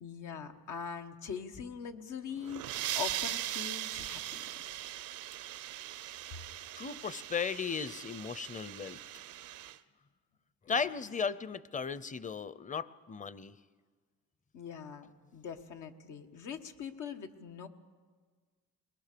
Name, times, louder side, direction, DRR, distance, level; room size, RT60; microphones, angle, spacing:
voice 1, 0.0-4.8 10.7-10.9 14.5-17.7, left 7 dB, 80° left, 5 dB, 1.5 m, -42 dB
sound 1, 2.3-9.8, right 13 dB, 85° right, 0.7 m, -40 dB
voice 2, 6.8-9.0 10.7-13.5, left 6 dB, 25° left, 17 dB, 0.7 m, -36 dB
21.5 x 20.5 x 6.9 m, 1.5 s
cardioid pair, 90°, 30 cm